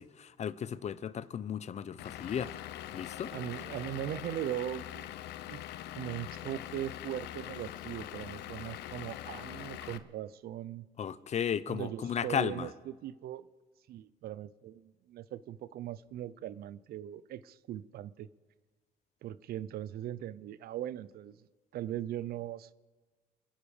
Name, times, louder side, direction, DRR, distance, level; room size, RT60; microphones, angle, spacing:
voice 1, 0.0-2.6 2.9-3.3 11.0-12.7, left 8 dB, 40° left, 0.7 m, -35 dB
Vehicle / Engine, 2.0-10.0, left 13 dB, 80° left, 0.7 m, -43 dB
voice 2, 3.3-5.1 5.5-5.6 5.9-10.9 11.7-13.5 13.9-18.3 19.2-21.4 21.7-22.7, right 12 dB, 65° right, 0.6 m, -39 dB
27.5 x 10.5 x 5.0 m
cardioid pair, 110°, 17 cm